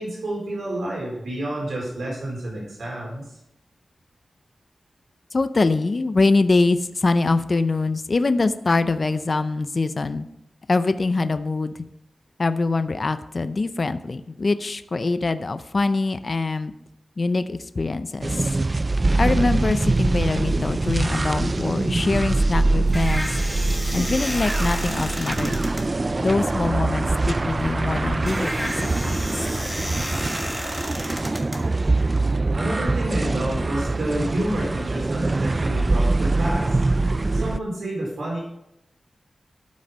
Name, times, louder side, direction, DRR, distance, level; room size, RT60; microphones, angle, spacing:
voice 1, 0.0-3.4 32.5-36.9 37.3-38.4, right 1 dB, 80° right, -4 dB, 4.2 m, -29 dB
voice 2, 5.3-10.3 10.7-11.9 12.4-16.7 17.2-18.5 19.1-23.3 23.9-25.6 26.2-29.3, left 3 dB, 40° left, 11 dB, 0.5 m, -23 dB
sound 1, 18.2-37.6, right 2 dB, 30° right, 0.3 m, -23 dB
sound 2, 22.4-32.3, equal, 5° left, 1.5 m, -33 dB
12.5 x 6.4 x 5.4 m, 0.83 s
wide cardioid pair, 135°, 0 cm